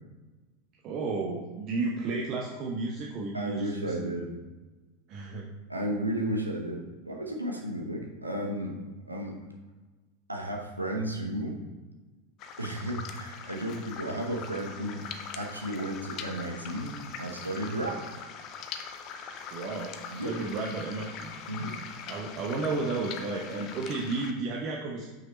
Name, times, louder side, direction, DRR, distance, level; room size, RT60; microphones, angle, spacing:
voice 1, 0.8-4.1 5.1-5.5 19.5-21.3 22.1-25.1, right 3 dB, 40° right, -1 dB, 0.8 m, -33 dB
voice 2, 3.3-4.3 5.7-8.7 9.1-9.3 10.3-11.6 12.6-15.0 15.4-18.0 20.1-20.3 21.5-21.7, right 1 dB, 85° right, 1 dB, 0.9 m, -33 dB
sound 1, 12.4-24.3, left 6 dB, 40° left, 0.7 m, -42 dB
6.1 x 5.2 x 4.3 m, 1.2 s
figure-of-eight pair, 85°, 0 cm